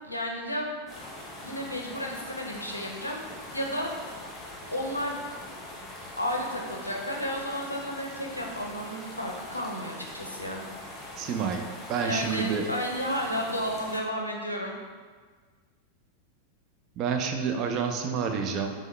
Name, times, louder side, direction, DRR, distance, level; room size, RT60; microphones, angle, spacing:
voice 1, 0.0-0.7 1.4-3.2 3.5-3.9 4.7-5.2 6.2-10.6 12.0-14.8, equal, 85° left, 0 dB, 0.5 m, -32 dB
sound 1, 0.9-14.0, left 1 dB, 15° left, 0.8 m, -42 dB
voice 2, 11.2-11.6 11.9-12.7 17.0-18.7, right 6 dB, 35° right, 4 dB, 0.4 m, -28 dB
3.7 x 3.2 x 3.0 m, 1.5 s
figure-of-eight pair, 90°, 0 cm